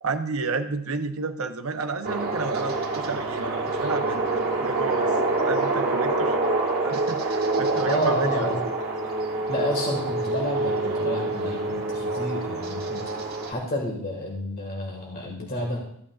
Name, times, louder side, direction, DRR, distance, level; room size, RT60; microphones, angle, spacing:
voice 1, 0.0-5.1 5.4-6.4 6.8-8.5, right 4 dB, 70° right, 8 dB, 0.7 m, -31 dB
sound 1, 2.0-13.5, right 2 dB, 45° right, 1.5 m, -26 dB
voice 2, 7.8-8.6 9.5-15.8, left 1 dB, 45° left, 0 dB, 1.7 m, -30 dB
14.0 x 8.6 x 2.3 m, 0.70 s
head